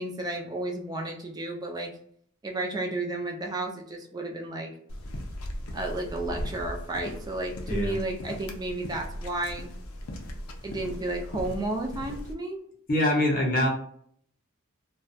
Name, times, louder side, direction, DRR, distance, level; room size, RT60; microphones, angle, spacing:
voice 1, 0.0-1.9 2.4-4.7 5.7-9.7 10.6-12.6, right 2 dB, 20° right, 1 dB, 0.4 m, -32 dB
sound 1, 4.9-12.3, equal, 85° left, 0.5 m, -38 dB
voice 2, 12.9-13.7, left 1 dB, 40° left, -1 dB, 0.7 m, -24 dB
2.3 x 2.1 x 2.6 m, 0.62 s
head